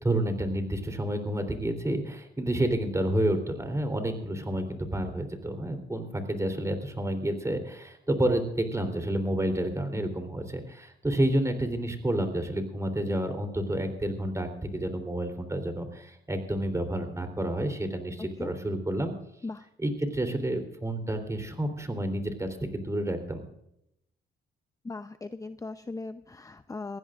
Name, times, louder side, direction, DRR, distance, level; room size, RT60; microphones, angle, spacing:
voice 1, 0.0-19.1 19.8-23.4, right 1 dB, 15° right, 6 dB, 3.4 m, -29 dB
voice 2, 18.2-18.5 19.4-19.7 24.8-27.0, left 3 dB, 15° left, 9 dB, 0.7 m, -39 dB
22.5 x 16.0 x 2.5 m, 0.78 s
cardioid pair, 90°, 20 cm